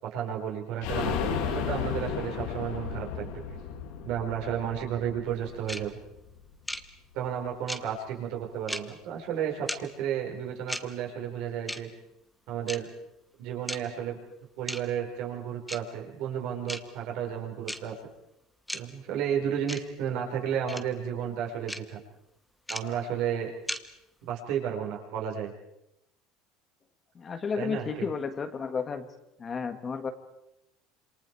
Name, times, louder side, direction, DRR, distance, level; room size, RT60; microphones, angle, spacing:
voice 1, 0.0-3.4 4.0-6.0 7.1-11.9 12.5-12.9 13.4-14.2 14.6-17.9 18.7-22.0 22.7-23.5 24.2-25.5 27.6-28.1, right 9 dB, 70° right, 1 dB, 4.9 m, -32 dB
sound 1, 0.8-6.4 6.8-6.9 7.2-7.3, left 7 dB, 80° left, 2.6 m, -34 dB
sound 2, 5.7-5.8 6.7-6.8 7.7-7.8 8.7-8.8 9.7-9.8 10.7-10.8 11.7-11.8 12.7-12.8 13.7-13.8 14.7-14.8 15.7-15.8 16.7-16.8 17.7-17.8 18.7-18.8 19.7-19.8 20.7-20.8 21.7-21.8 22.7-22.8 23.7-23.8, equal, ahead, 1.1 m, -34 dB
voice 2, 27.1-29.1 29.4-30.1, left 5 dB, 25° left, 8 dB, 1.7 m, -32 dB
27.0 x 26.5 x 4.7 m, 0.84 s
cardioid pair, 135°, 0 cm